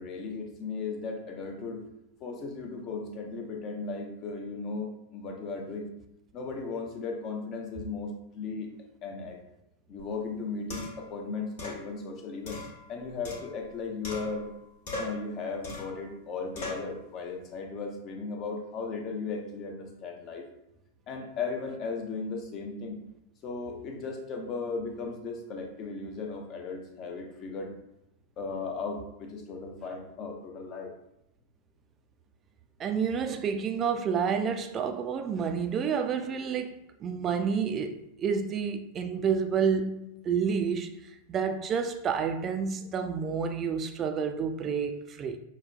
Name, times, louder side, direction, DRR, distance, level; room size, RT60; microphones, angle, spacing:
voice 1, 0.0-1.8 2.2-5.9 6.3-8.7 9.0-9.4 9.9-12.6 12.9-14.5 14.9-20.4 21.1-23.0 23.4-27.7 28.4-30.9, left 4 dB, 35° left, 0.6 m, -36 dB
sound 1, 10.0-10.1 10.7-11.1 11.6-11.8 12.5-13.7 14.0-14.6 14.9-15.3 15.6-16.0 16.5-16.9, left 2 dB, 55° left, 1.0 m, -39 dB
voice 2, 32.8-36.7 37.0-41.0 41.3-45.4, right 6 dB, 30° right, 0.3 m, -29 dB
5.5 x 2.2 x 2.3 m
figure-of-eight pair, 90°, 0 cm